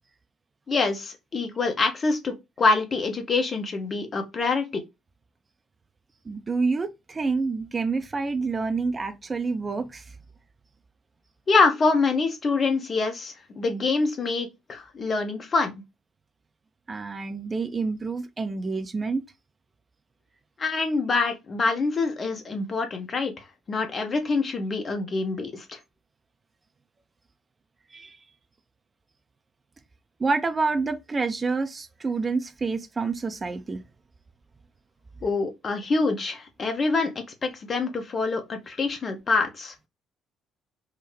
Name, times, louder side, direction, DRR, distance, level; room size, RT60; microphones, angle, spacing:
voice 1, 0.7-4.8 11.5-15.7 20.6-25.8 35.2-39.7, left 4 dB, 40° left, 0.9 m, -25 dB
voice 2, 6.3-10.0 16.9-19.2 27.9-28.1 30.2-33.8, right 4 dB, 30° right, 0.5 m, -28 dB
3.5 x 2.1 x 3.1 m
figure-of-eight pair, 45°, 0 cm